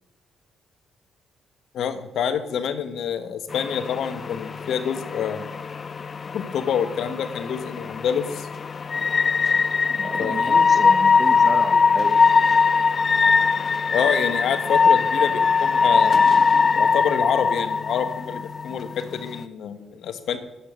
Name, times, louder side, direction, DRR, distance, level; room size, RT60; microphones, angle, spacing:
voice 1, 1.7-5.4 6.3-8.5 10.2-10.6 13.9-16.3 16.7-20.4, left 8 dB, 70° left, 9 dB, 1.3 m, -27 dB
sound 1, 3.5-19.4, left 5 dB, 40° left, 0.4 m, -21 dB
voice 2, 10.0-12.2, right 3 dB, 25° right, 13 dB, 0.9 m, -32 dB
10.0 x 8.3 x 7.6 m, 0.98 s
cardioid pair, 90°, 0 cm